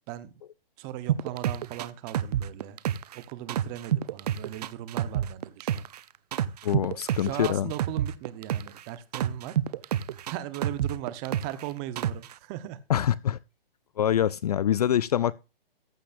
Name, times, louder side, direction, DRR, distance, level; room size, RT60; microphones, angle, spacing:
voice 1, 0.8-2.8 3.1-5.8 7.0-9.6 9.8-10.0 10.3-12.8, right 13 dB, 25° right, 1.0 m, -38 dB
sound 1, 1.1-3.2 3.5-6.0 6.3-8.8 9.1-11.6 12.0-12.3, right 11 dB, 45° right, 0.7 m, -28 dB
voice 2, 6.6-7.7 12.9-13.4 14.0-15.3, left 10 dB, 40° left, 0.4 m, -25 dB
14.5 x 10.0 x 2.6 m
hypercardioid pair, 145°, 29 cm